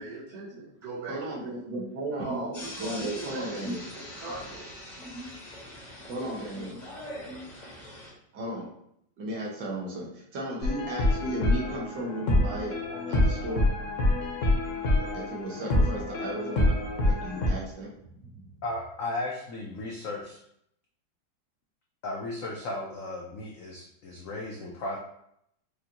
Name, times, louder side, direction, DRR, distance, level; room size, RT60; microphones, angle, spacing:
voice 1, 0.0-1.6 2.2-4.9, right 2 dB, 55° right, -7 dB, 1.9 m, -39 dB
voice 2, 1.1-3.8 4.9-5.3 6.1-6.9 7.3-7.4 8.3-8.7 9.2-12.7 13.1-13.6 15.0-16.8 17.0-18.5, right 1 dB, 75° right, -3 dB, 1.7 m, -35 dB
sound 1, 2.5-8.1, left 1 dB, 35° left, 0.8 m, -43 dB
sound 2, 10.6-17.5, left 1 dB, 55° left, 0.9 m, -26 dB
voice 3, 18.6-20.4 22.0-25.0, left 2 dB, 80° left, -2 dB, 0.7 m, -35 dB
4.9 x 2.5 x 2.8 m, 0.74 s
omnidirectional pair, 2.0 m